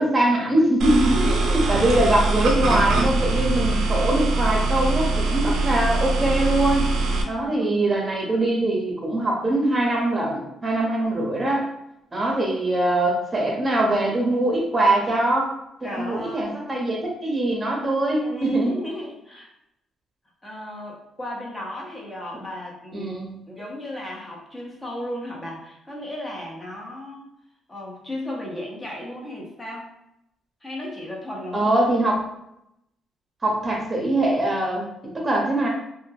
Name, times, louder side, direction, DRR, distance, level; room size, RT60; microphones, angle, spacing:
voice 1, 0.0-6.8 7.3-11.7 12.1-15.5 15.8-18.7 22.9-23.4 31.5-32.2 33.4-35.7, right 1 dB, 25° right, -1 dB, 0.8 m, -22 dB
sound 1, 0.8-7.2, right 2 dB, 70° right, 0.4 m, -22 dB
voice 2, 1.0-1.8 7.0-7.8 15.8-16.5 18.2-19.5 20.4-23.2 23.5-27.3 27.7-29.9 30.6-31.8, left 1 dB, 20° left, -2 dB, 0.7 m, -35 dB
2.2 x 2.1 x 3.2 m, 0.82 s
cardioid pair, 90°, 0 cm